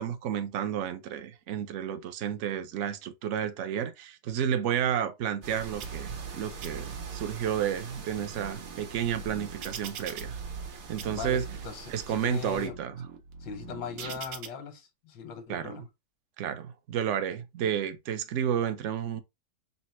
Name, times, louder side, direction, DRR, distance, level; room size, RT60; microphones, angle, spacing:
voice 1, 0.0-10.4 10.7-11.4 11.9-13.1 15.5-15.8 16.4-19.2, right 9 dB, 70° right, 0.7 m, -31 dB
sound 1, 5.4-12.7, right 4 dB, 50° right, 1.0 m, -44 dB
sound 2, 5.8-6.3 6.6-7.3 7.9-10.7 11.0-11.7 12.3-14.5, right 7 dB, 90° right, 1.4 m, -42 dB
voice 2, 11.1-12.8 13.4-15.9, left 6 dB, 90° left, 1.6 m, -40 dB
4.2 x 2.1 x 4.3 m
omnidirectional pair, 1.9 m